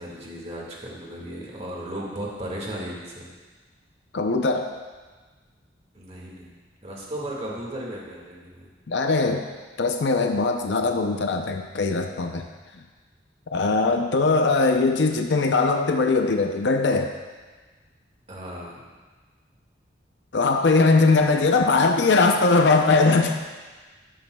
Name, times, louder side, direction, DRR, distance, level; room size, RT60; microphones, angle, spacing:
voice 1, 0.0-3.3 5.9-6.5 6.8-8.7 18.3-18.9, right 1 dB, 35° right, -3 dB, 1.8 m, -35 dB
voice 2, 4.1-4.7 8.9-9.5 9.8-12.5 13.5-17.1 20.3-23.4, left 3 dB, 65° left, 4 dB, 0.6 m, -20 dB
13.0 x 10.0 x 2.3 m, 1.4 s
head